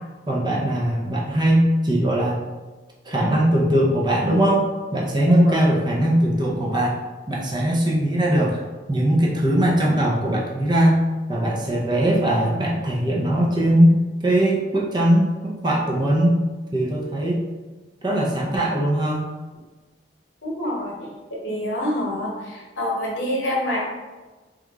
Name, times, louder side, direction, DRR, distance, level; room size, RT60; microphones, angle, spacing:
voice 1, 0.3-2.4 3.1-4.6 4.9-7.0 7.3-8.6 8.9-11.0 11.3-13.9 14.2-16.4 16.7-17.4 18.0-19.3, right 1 dB, 25° right, -3 dB, 0.5 m, -20 dB
voice 2, 20.4-21.0 21.4-22.3 22.8-23.9, left 1 dB, 65° left, -3 dB, 1.0 m, -25 dB
3.0 x 2.4 x 3.5 m, 1.2 s
head